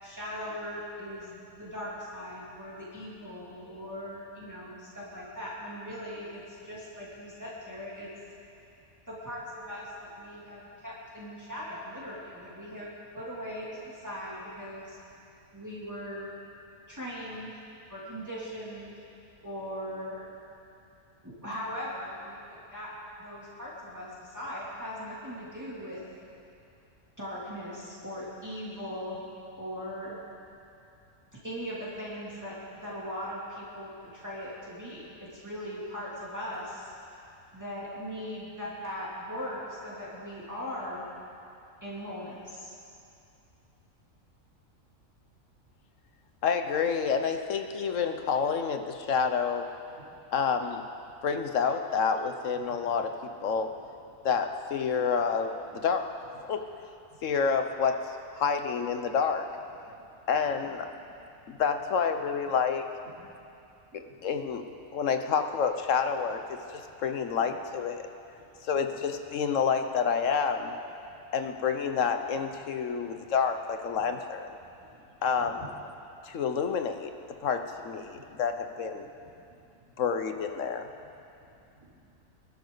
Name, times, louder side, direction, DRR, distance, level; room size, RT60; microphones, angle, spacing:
voice 1, 0.0-8.1 9.1-15.0 15.5-16.3 16.9-17.6 17.9-18.9 19.4-20.3 21.2-22.4 22.7-22.9 23.2-26.0 27.2-29.2 29.6-30.2 31.4-36.9 37.5-41.1 41.8-42.7, equal, 15° right, -8 dB, 2.9 m, -39 dB
voice 2, 46.4-49.7 50.3-50.8 51.2-53.7 54.2-56.1 56.4-56.6 57.2-59.5 60.3-60.9 61.5-62.9 64.2-64.6 64.9-68.0 68.6-70.7 71.3-74.6 75.2-75.6 76.2-77.1 77.4-79.1 80.0-80.9, left 6 dB, 70° left, 6 dB, 1.3 m, -28 dB
voice 3, 74.7-75.1 75.4-75.7 78.1-78.3 79.2-79.7 81.4-82.1, right 2 dB, 80° right, -10 dB, 4.1 m, -54 dB
25.5 x 12.0 x 4.0 m, 2.6 s
omnidirectional pair, 1.4 m